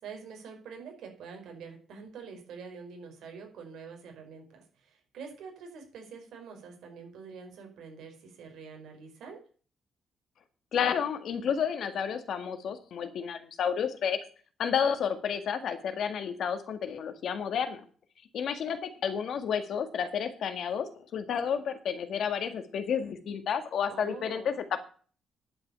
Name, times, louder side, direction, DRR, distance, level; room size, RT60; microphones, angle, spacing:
voice 1, 0.0-9.4 23.9-24.5, right 5 dB, 65° right, 3 dB, 4.9 m, -46 dB
voice 2, 10.7-14.2 14.6-17.8 18.3-24.8, left 7 dB, 55° left, 9 dB, 1.8 m, -31 dB
10.5 x 8.1 x 6.9 m, 0.41 s
cardioid pair, 175°, 0 cm